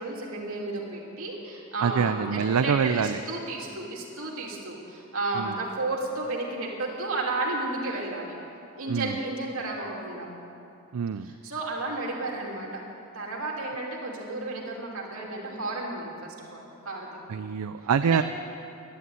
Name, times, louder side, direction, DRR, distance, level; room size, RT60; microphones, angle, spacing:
voice 1, 0.0-8.4 8.8-10.3 11.2-12.8 13.1-17.1 18.0-18.2, right 2 dB, 65° right, -2 dB, 2.8 m, -32 dB
voice 2, 1.8-3.2 5.3-5.6 8.9-9.2 10.9-11.3 17.3-18.2, right 6 dB, 85° right, 10 dB, 0.4 m, -25 dB
12.5 x 11.0 x 9.4 m, 2.7 s
head